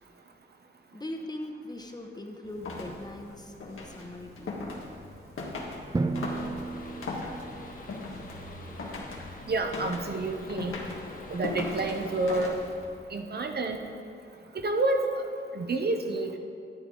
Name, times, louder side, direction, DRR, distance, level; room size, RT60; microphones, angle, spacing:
voice 1, 0.9-4.5, left 1 dB, 20° left, 3 dB, 0.9 m, -40 dB
sound 1, 2.4-13.0, left 2 dB, 90° left, 1.5 m, -40 dB
Drum, 5.9-7.9, right 3 dB, 20° right, 0.4 m, -33 dB
sound 2, 6.3-12.4, left 2 dB, 40° left, 1.2 m, -46 dB
voice 2, 9.5-10.7 11.3-12.6 13.1-13.8 14.5-15.3 15.5-16.4, right 2 dB, 50° right, 4 dB, 0.8 m, -29 dB
12.0 x 9.6 x 3.8 m, 2.4 s
wide cardioid pair, 95°, 21 cm